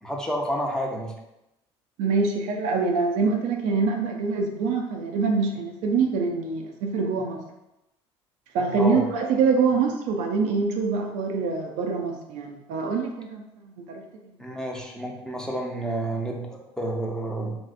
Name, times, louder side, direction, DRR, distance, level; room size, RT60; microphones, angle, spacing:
voice 1, 0.0-1.1 8.8-9.0 14.4-17.6, right 1 dB, 5° left, 0 dB, 0.6 m, -30 dB
voice 2, 2.0-7.4 8.5-13.4 13.9-14.0, right 4 dB, 65° right, 2 dB, 0.4 m, -25 dB
3.0 x 2.6 x 2.5 m, 0.90 s
hypercardioid pair, 65°, 14 cm